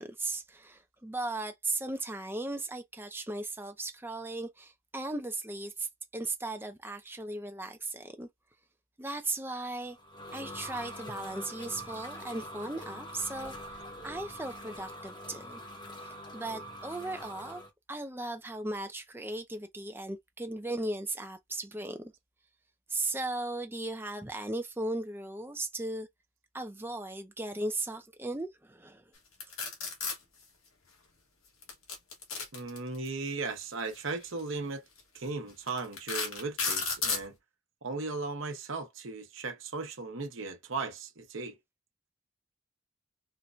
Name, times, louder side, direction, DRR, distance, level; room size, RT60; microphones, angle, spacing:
voice 1, 0.0-8.3 9.0-10.0 10.3-13.5 14.0-15.6 16.0-17.6 17.9-22.1 22.9-26.1 26.5-29.0, right 2 dB, 10° right, 0.5 m, -37 dB
sound 1, 9.7-17.7, equal, 20° left, 0.8 m, -44 dB
sound 2, 29.4-30.2 31.6-33.1 34.2-34.4 35.0-35.1 35.7-37.3, left 5 dB, 85° left, 1.3 m, -32 dB
voice 2, 32.5-34.8 35.1-37.3 37.8-41.5, right 3 dB, 70° right, 0.9 m, -37 dB
4.4 x 2.2 x 2.5 m
head